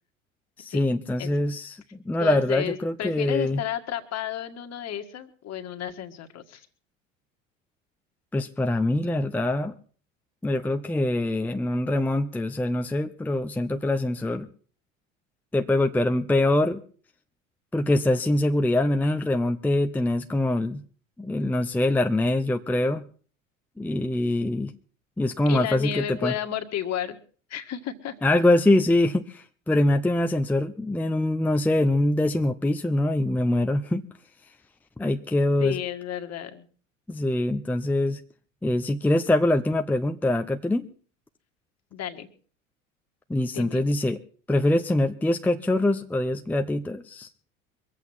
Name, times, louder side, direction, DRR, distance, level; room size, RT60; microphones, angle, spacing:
voice 1, 0.6-3.6 8.3-9.7 10.4-14.5 15.5-16.8 17.7-20.8 21.2-23.0 23.8-24.7 25.2-26.3 28.2-34.0 35.0-35.8 37.1-38.2 38.6-40.9 43.3-44.2 44.5-47.3, left 1 dB, 5° left, 7 dB, 0.6 m, -24 dB
voice 2, 2.2-6.7 25.4-27.1 27.5-28.1 35.6-36.7 41.9-42.3 43.5-43.8, left 10 dB, 40° left, 7 dB, 1.8 m, -32 dB
23.0 x 8.3 x 5.7 m, 0.43 s
hypercardioid pair, 75°, 39 cm